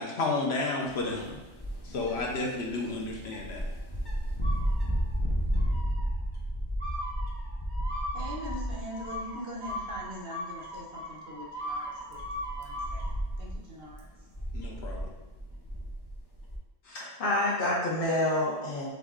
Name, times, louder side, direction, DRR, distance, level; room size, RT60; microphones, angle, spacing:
voice 1, 0.0-1.4 1.8-3.6 14.5-15.1, left 3 dB, 75° left, -1 dB, 1.1 m, -32 dB
sound 1, 0.8-9.3 9.6-10.1 10.6-10.7 11.6-16.6, equal, 25° left, 0.6 m, -33 dB
sound 2, 4.4-5.2 5.6-6.1 6.8-13.1, equal, 80° right, 1.7 m, -39 dB
voice 2, 8.1-13.0 13.4-14.1, equal, 60° right, -2 dB, 1.2 m, -42 dB
voice 3, 16.8-18.9, left 1 dB, 55° left, -8 dB, 1.2 m, -28 dB
4.0 x 3.6 x 3.6 m, 1.1 s
omnidirectional pair, 1.1 m